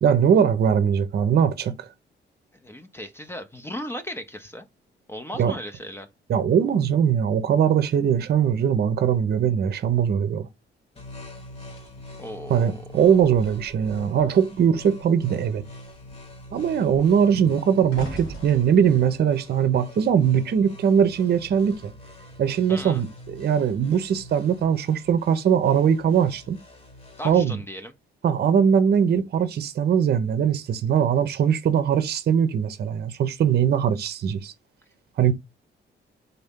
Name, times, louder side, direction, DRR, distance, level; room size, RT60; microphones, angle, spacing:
voice 1, 0.0-1.7 5.4-5.6 6.3-10.5 12.5-15.6 16.5-21.9 22.4-26.6 27.2-27.6 28.2-34.5 35.2-35.3, right 8 dB, 55° right, 0.7 m, -21 dB
voice 2, 2.5-4.7 5.1-6.1 12.2-12.8 22.7-23.0 27.2-27.9, equal, 10° left, 0.6 m, -36 dB
sound 1, 10.9-27.3, left 1 dB, 30° left, 1.1 m, -44 dB
sound 2, 11.7-14.4 14.7-15.1 15.4-20.7 21.5-21.7, right 1 dB, 85° left, 2.1 m, -43 dB
4.0 x 2.7 x 3.5 m
cardioid pair, 90°, 20 cm